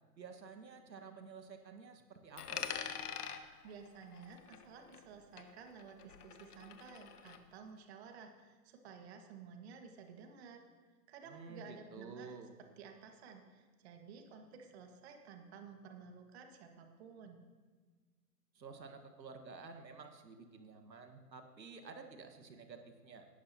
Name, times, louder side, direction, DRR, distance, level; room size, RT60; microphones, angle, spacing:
voice 1, 0.2-2.8 11.3-12.5 18.5-23.3, right 4 dB, 90° right, 5 dB, 1.7 m, -51 dB
Coin (dropping), 2.4-5.1 5.4-7.4, left 8 dB, 65° left, 1.4 m, -45 dB
voice 2, 3.6-10.6 11.1-17.4, right 6 dB, 40° right, 4 dB, 1.8 m, -53 dB
18.0 x 11.5 x 2.9 m, 1.4 s
hypercardioid pair, 140°, 50 cm